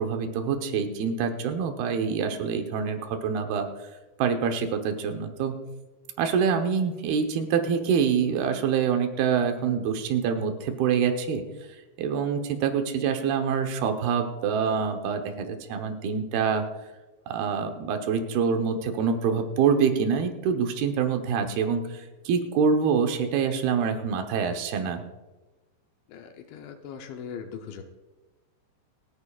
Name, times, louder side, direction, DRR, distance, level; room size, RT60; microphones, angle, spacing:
voice 1, 0.0-3.7 4.2-5.7 6.2-11.4 12.0-16.7 17.3-21.9 22.3-25.0, right 6 dB, 70° right, 5 dB, 2.8 m, -26 dB
voice 2, 26.1-27.8, left 7 dB, 85° left, 5 dB, 3.2 m, -40 dB
28.5 x 9.8 x 2.4 m, 1.2 s
omnidirectional pair, 5.1 m